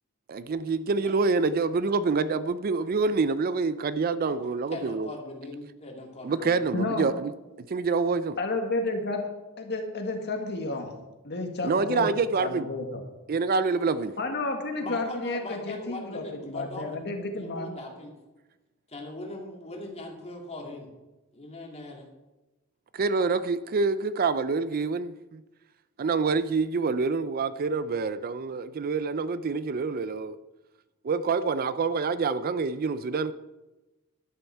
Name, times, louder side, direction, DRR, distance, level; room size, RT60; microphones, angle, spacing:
voice 1, 0.3-5.1 6.2-7.3 7.7-8.4 11.6-12.7 13.3-14.1 22.9-25.4 26.0-30.3 31.0-33.3, right 4 dB, 45° right, 0.4 m, -26 dB
voice 2, 4.7-6.7 14.8-17.1 17.3-18.1 18.9-20.9 21.3-22.1, left 2 dB, 30° left, 2.6 m, -40 dB
voice 3, 6.7-7.1 8.4-9.3 9.6-11.0 11.2-12.1 12.4-13.0 14.2-17.7, left 2 dB, 50° left, 1.7 m, -31 dB
11.5 x 11.5 x 4.6 m
head